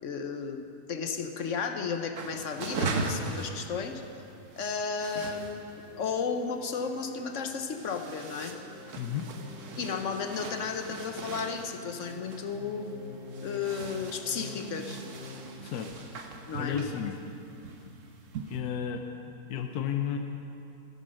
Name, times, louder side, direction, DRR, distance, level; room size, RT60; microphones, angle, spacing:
voice 1, 0.0-0.6 0.9-4.0 4.6-8.5 9.8-12.9 13.4-15.0 16.5-17.0, left 5 dB, 60° left, 6 dB, 1.0 m, -33 dB
Foley getting in and out of bed sheets fabric rustle, 2.2-18.6, right 3 dB, 55° right, 1.3 m, -40 dB
sound 1, 5.8-15.5, equal, 35° left, 3.9 m, -47 dB
voice 2, 15.6-15.9 16.6-17.2 18.5-19.0 19.5-20.2, left 9 dB, 80° left, 5 dB, 1.2 m, -32 dB
15.0 x 9.3 x 6.4 m, 2.7 s
omnidirectional pair, 1.6 m